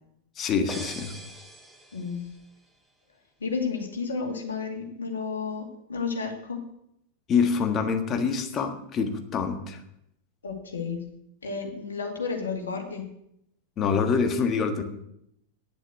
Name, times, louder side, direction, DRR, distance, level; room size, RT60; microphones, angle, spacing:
voice 1, 0.4-1.1 7.3-9.8 13.8-14.8, left 5 dB, 30° left, 6 dB, 1.5 m, -25 dB
sound 1, 0.7-2.5, right 1 dB, 5° right, 1.7 m, -42 dB
voice 2, 1.9-2.3 3.4-6.6 10.4-11.0 11.4-13.0, left 5 dB, 70° left, 2 dB, 2.3 m, -32 dB
9.7 x 8.1 x 8.0 m, 0.77 s
figure-of-eight pair, 90°, 0 cm